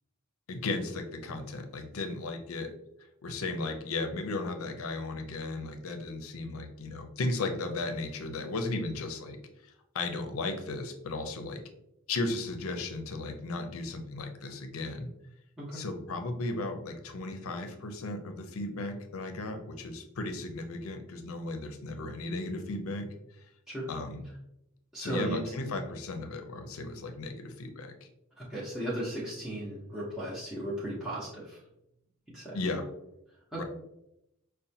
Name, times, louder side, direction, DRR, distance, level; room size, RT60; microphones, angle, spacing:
voice 1, 0.5-2.7 3.2-9.4 9.9-11.6 12.1-15.1 15.7-23.1 23.9-24.2 25.0-28.1 32.5-32.9 33.5-33.6, left 2 dB, 70° left, 6 dB, 0.5 m, -35 dB
voice 2, 24.9-25.4 28.4-31.6 32.3-32.6 33.5-33.6, right 1 dB, 5° right, -9 dB, 0.8 m, -36 dB
5.4 x 2.2 x 2.7 m, 0.83 s
head